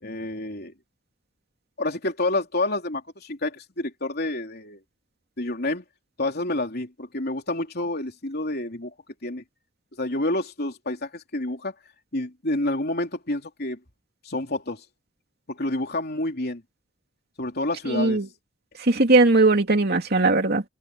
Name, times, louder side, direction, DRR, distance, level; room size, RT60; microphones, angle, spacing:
voice 1, 0.0-0.7 1.8-4.8 5.4-5.8 6.2-8.9 9.2-9.4 10.0-11.7 12.1-13.8 14.2-14.8 15.5-16.6 17.4-18.2, left 2 dB, 55° left, 3.5 m, -28 dB
voice 2, 17.9-18.3 18.8-20.6, right 2 dB, 55° right, 2.8 m, -19 dB
head